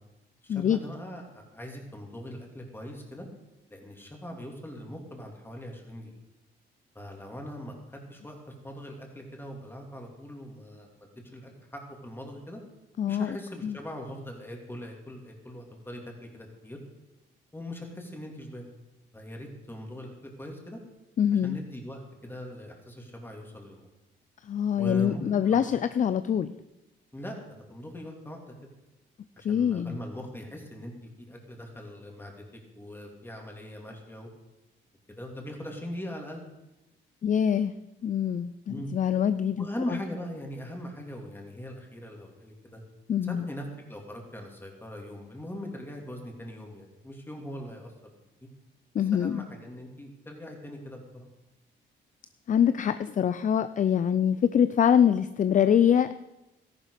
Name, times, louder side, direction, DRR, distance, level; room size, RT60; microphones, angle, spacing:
voice 1, 0.4-3.3 3.7-6.2 6.9-12.6 13.1-16.8 17.5-18.6 19.1-20.8 21.3-23.9 24.7-25.6 25.9-26.1 27.1-27.4 27.7-28.5 29.4-30.9 31.2-34.3 35.1-36.4 38.7-38.9 39.6-42.8 43.3-47.9 49.0-51.3, equal, 10° left, 1 dB, 3.1 m, -41 dB
voice 2, 13.0-13.4 13.6-13.8 21.2-21.6 24.4-26.5 29.4-30.0 37.2-37.7 38.0-39.7 43.1-43.5 48.9-49.4 52.5-56.2, left 8 dB, 40° left, 13 dB, 0.5 m, -24 dB
13.5 x 11.5 x 5.1 m, 0.99 s
cardioid pair, 90°, 20 cm